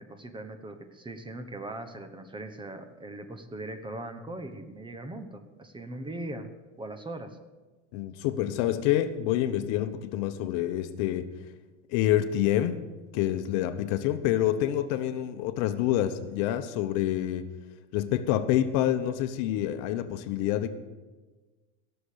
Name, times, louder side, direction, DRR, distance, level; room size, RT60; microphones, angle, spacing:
voice 1, 0.0-6.5 6.8-7.4, right 1 dB, 15° right, 9 dB, 1.1 m, -40 dB
voice 2, 7.9-11.3 11.9-12.8 13.1-17.4 17.9-20.7, left 12 dB, 55° left, 10 dB, 1.0 m, -27 dB
17.0 x 6.9 x 6.9 m, 1.3 s
supercardioid pair, 115°, 36 cm